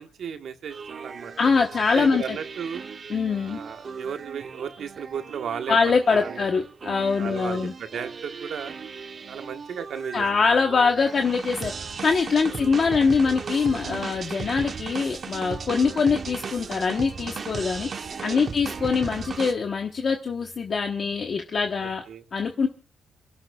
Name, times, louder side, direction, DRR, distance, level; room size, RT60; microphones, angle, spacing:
voice 1, 0.0-1.3 1.9-2.8 3.3-6.6 7.0-8.7 9.3-10.3 12.4-12.5 16.1-16.2 18.2-18.5 21.8-22.2, right 7 dB, 65° right, 6 dB, 1.4 m, -35 dB
sound 1, 0.7-19.5, right 5 dB, 40° right, 0.9 m, -37 dB
voice 2, 1.4-2.4 3.1-3.6 5.7-7.7 10.1-11.7 12.0-17.9 18.2-22.0 22.3-22.7, left 5 dB, 45° left, 3 dB, 1.1 m, -23 dB
28.0 x 11.5 x 2.3 m, 0.37 s
cardioid pair, 120°, 0 cm